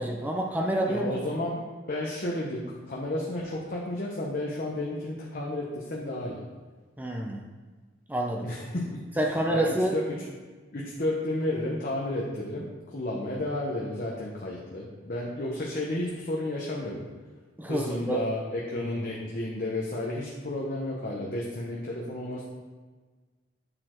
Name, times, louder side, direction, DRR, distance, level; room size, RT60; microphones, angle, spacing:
voice 1, 0.0-1.1 7.0-7.4 8.1-8.5 9.2-10.0 17.6-18.2 18.8-18.9, right 1 dB, 10° right, 0 dB, 0.5 m, -28 dB
voice 2, 0.9-1.6 1.9-6.4 8.4-9.2 9.5-10.2 10.7-17.0 17.7-18.4 18.7-22.5, left 1 dB, 45° left, -3 dB, 0.9 m, -32 dB
8.8 x 4.2 x 4.4 m, 1.4 s
head